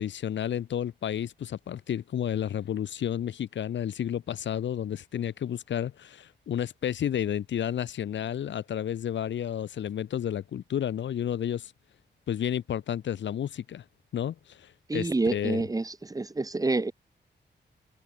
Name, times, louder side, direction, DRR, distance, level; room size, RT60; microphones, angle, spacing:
voice 1, 0.0-11.7 12.3-13.8 14.1-15.6, left 10 dB, 85° left, 1.1 m, -31 dB
voice 2, 14.9-16.9, right 3 dB, 20° right, 2.3 m, -28 dB
wide cardioid pair, 160°, 18 cm